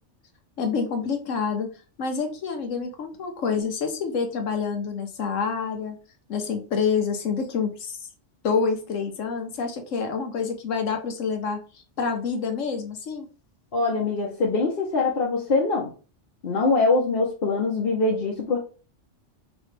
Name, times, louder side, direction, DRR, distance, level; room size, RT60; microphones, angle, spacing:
voice 1, 0.6-1.7 2.0-5.9 6.3-8.0 8.4-11.6 12.0-13.3, left 5 dB, 85° left, 5 dB, 1.3 m, -27 dB
voice 2, 13.7-15.9 16.4-18.6, left 3 dB, 50° left, -3 dB, 1.0 m, -23 dB
5.2 x 3.1 x 3.3 m, 0.36 s
omnidirectional pair, 1.3 m